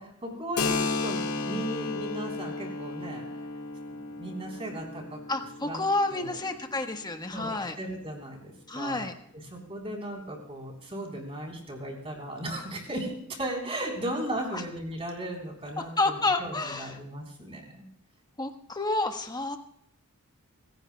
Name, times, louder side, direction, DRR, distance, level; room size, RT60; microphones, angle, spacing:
voice 1, 0.0-3.2 4.2-5.2 5.7-5.8 6.1-6.4 7.3-9.1 9.5-17.8, right 1 dB, 25° right, 1 dB, 3.7 m, -36 dB
Keyboard (musical), 0.6-7.9, left 3 dB, 80° left, 1.7 m, -34 dB
voice 2, 5.3-7.8 8.7-9.1 14.5-14.6 15.8-17.0 18.4-19.6, left 2 dB, 20° left, 6 dB, 1.2 m, -29 dB
27.5 x 15.5 x 2.2 m, 0.73 s
head